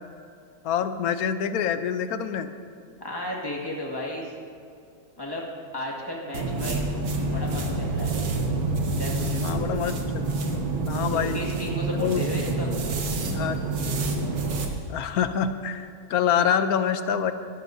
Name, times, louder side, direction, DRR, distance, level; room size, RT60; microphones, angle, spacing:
voice 1, 0.6-2.5 9.4-10.3 10.9-11.4 12.0-12.3 13.3-13.6 14.9-17.3, left 8 dB, 75° left, 10 dB, 1.1 m, -26 dB
voice 2, 3.0-4.3 5.2-5.4 5.7-6.8 7.3-8.1 9.0-9.7 11.1-12.7, left 1 dB, 15° left, -3 dB, 1.9 m, -34 dB
sound 1, 6.3-14.7, right 3 dB, 70° right, 1.6 m, -27 dB
19.5 x 12.0 x 2.7 m, 2.4 s
omnidirectional pair, 1.6 m